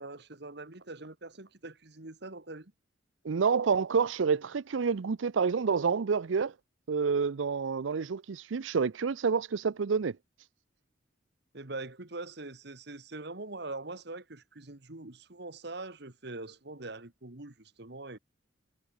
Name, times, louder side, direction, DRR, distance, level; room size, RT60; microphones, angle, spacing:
voice 1, 0.0-2.7 11.5-18.2, right 2 dB, 60° right, 1.8 m, -43 dB
voice 2, 3.2-6.5 6.9-10.2, right 5 dB, 80° right, 0.5 m, -28 dB
head